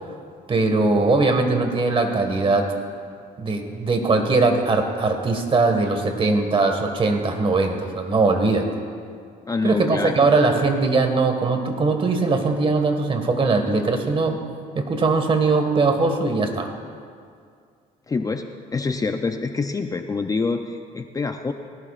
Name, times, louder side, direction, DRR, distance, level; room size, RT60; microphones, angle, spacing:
voice 1, 0.5-2.7 3.4-8.7 9.6-14.4 14.7-16.7, right 3 dB, 30° right, 5 dB, 1.7 m, -20 dB
voice 2, 9.5-10.3 18.1-21.5, left 4 dB, 20° left, 6 dB, 0.5 m, -26 dB
19.5 x 17.0 x 2.5 m, 2.2 s
cardioid pair, 110°, 17 cm